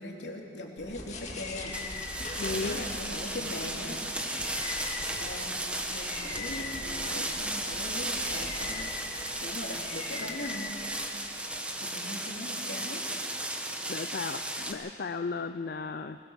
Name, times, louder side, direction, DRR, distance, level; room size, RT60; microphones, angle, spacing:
voice 1, 0.0-1.8 2.2-4.0 5.2-5.5 5.9-10.8 11.8-13.0, left 1 dB, 75° left, 0 dB, 3.0 m, -40 dB
sound 1, 0.8-11.4, left 3 dB, 40° left, 2.1 m, -41 dB
sound 2, 1.7-14.7, right 1 dB, 5° right, 1.5 m, -35 dB
voice 2, 2.4-2.8 13.9-16.2, left 4 dB, 55° left, 9 dB, 0.5 m, -35 dB
21.0 x 20.5 x 6.4 m, 2.8 s
head